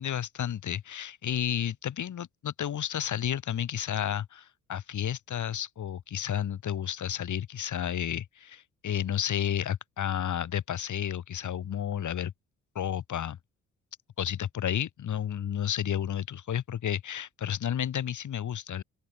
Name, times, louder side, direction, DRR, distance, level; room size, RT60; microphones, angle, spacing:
voice 1, 0.0-12.3 12.7-13.4 14.2-18.8, left 9 dB, 45° left, 3.2 m, -31 dB
open air
figure-of-eight pair, 45°, 40 cm